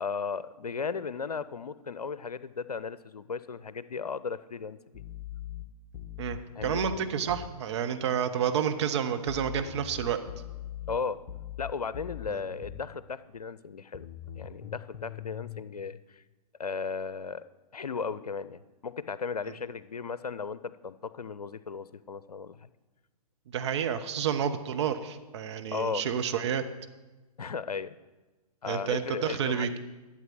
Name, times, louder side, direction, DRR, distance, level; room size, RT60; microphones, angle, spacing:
voice 1, 0.0-4.8 6.6-6.8 10.9-11.2 11.6-14.1 14.4-16.2 16.6-17.4 17.7-22.7 25.7-26.0 27.4-28.0 28.6-29.8, left 5 dB, 70° left, 16 dB, 0.7 m, -36 dB
sound 1, 4.9-7.5 9.3-12.9 13.9-15.6, left 11 dB, 30° left, 1.0 m, -41 dB
voice 2, 6.2-10.2 12.3-12.4 23.5-26.6 28.7-29.8, right 8 dB, 45° right, 8 dB, 1.1 m, -30 dB
12.5 x 8.0 x 7.6 m, 1.2 s
figure-of-eight pair, 120°, 20 cm